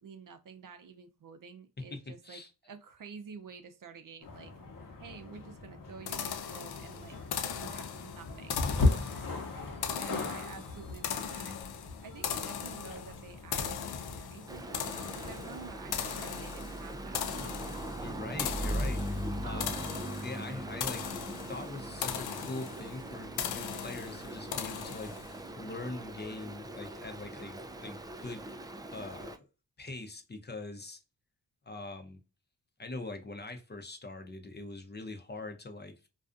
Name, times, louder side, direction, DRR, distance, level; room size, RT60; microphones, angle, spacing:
voice 1, 0.0-2.4 2.7-4.5 5.0-7.2 7.5-8.6 10.0-11.6 12.0-17.3 19.4-19.8, right 5 dB, 55° right, 0.6 m, -49 dB
voice 2, 1.9-2.5 18.0-19.9 20.2-21.0 21.5-28.5 28.9-29.4 29.8-31.0 31.7-32.2 32.8-36.1, left 2 dB, 25° left, 0.6 m, -42 dB
sound 1, 4.2-15.7, left 3 dB, 55° left, 0.9 m, -37 dB
sound 2, 6.1-25.4, left 8 dB, 75° left, 0.5 m, -39 dB
Stream, 14.5-29.4, right 1 dB, 10° right, 0.3 m, -40 dB
2.5 x 2.3 x 2.4 m
cardioid pair, 55°, 39 cm